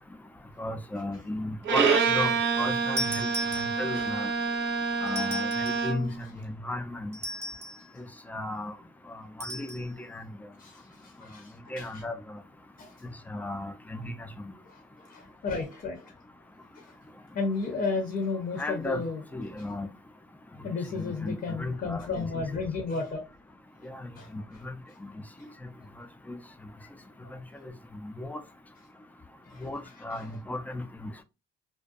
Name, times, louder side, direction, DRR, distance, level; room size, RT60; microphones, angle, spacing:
voice 1, 0.6-4.3 5.0-7.2 8.3-8.8 9.1-10.2 11.7-12.2 13.3-14.5 18.6-19.0 19.3-19.9 20.9-22.3 23.8-24.7 25.0-25.1 26.3-26.4 27.6-27.7 28.0-28.4 29.6-31.2, left 1 dB, 10° left, 0.4 m, -35 dB
Bowed string instrument, 1.6-6.2, right 5 dB, 65° right, 0.6 m, -27 dB
sound 1, 3.0-4.1 5.1-5.9 7.1-7.9 9.4-9.8, equal, 10° right, 0.8 m, -36 dB
voice 2, 10.6-12.1 12.8-12.9 14.7-14.8 15.1-16.0 16.8-16.9 17.3-19.2 20.6-23.2 24.2-24.3 27.2-27.4 29.5-29.7 30.1-30.3, left 4 dB, 50° left, 0.7 m, -33 dB
2.5 x 2.1 x 2.3 m
cardioid pair, 90°, 20 cm